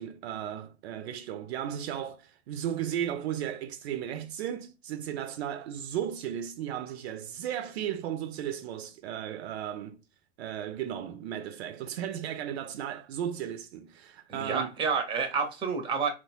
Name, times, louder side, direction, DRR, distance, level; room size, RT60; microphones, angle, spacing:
voice 1, 0.0-10.0 10.4-14.7, right 10 dB, 60° right, 0.5 m, -35 dB
voice 2, 14.3-16.1, right 5 dB, 15° right, 0.6 m, -29 dB
2.8 x 2.2 x 2.7 m
hypercardioid pair, 100°, 37 cm